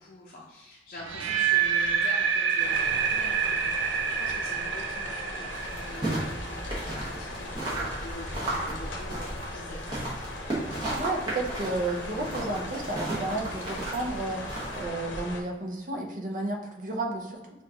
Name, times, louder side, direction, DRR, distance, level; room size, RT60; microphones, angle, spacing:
voice 1, 0.0-10.1, left 1 dB, 50° left, -4 dB, 0.6 m, -45 dB
sound 1, 1.0-7.0, right 7 dB, 85° right, 0.4 m, -27 dB
sound 2, 2.6-15.4, left 1 dB, 85° left, 0.7 m, -39 dB
sound 3, 5.5-14.8, right 1 dB, 25° right, 1.2 m, -35 dB
voice 2, 10.9-14.4 14.7-17.6, right 2 dB, 45° right, 1 dB, 0.6 m, -32 dB
5.6 x 2.5 x 2.9 m, 1.1 s
head